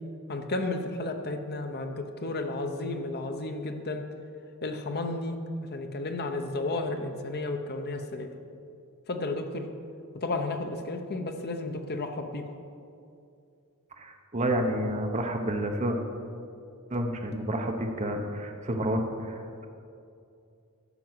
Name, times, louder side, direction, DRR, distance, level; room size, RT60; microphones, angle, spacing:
voice 1, 0.3-4.0 4.6-5.4 5.7-8.3 9.1-9.7 10.1-12.4, left 2 dB, 45° left, 5 dB, 0.9 m, -32 dB
voice 2, 14.0-16.0 16.9-19.6, right 1 dB, 30° right, 2 dB, 1.0 m, -30 dB
12.0 x 6.2 x 7.9 m, 2.5 s
head